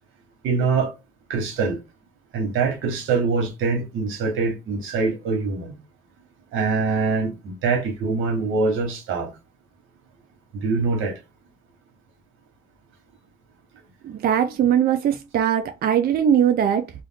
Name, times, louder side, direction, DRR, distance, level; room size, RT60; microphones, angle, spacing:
voice 1, 0.4-0.9 1.3-1.8 2.3-5.8 6.5-9.3 10.5-11.2, right 4 dB, 85° right, 1.1 m, -24 dB
voice 2, 14.0-16.9, right 9 dB, 50° right, 0.4 m, -20 dB
2.5 x 2.3 x 3.4 m
cardioid pair, 90°, 20 cm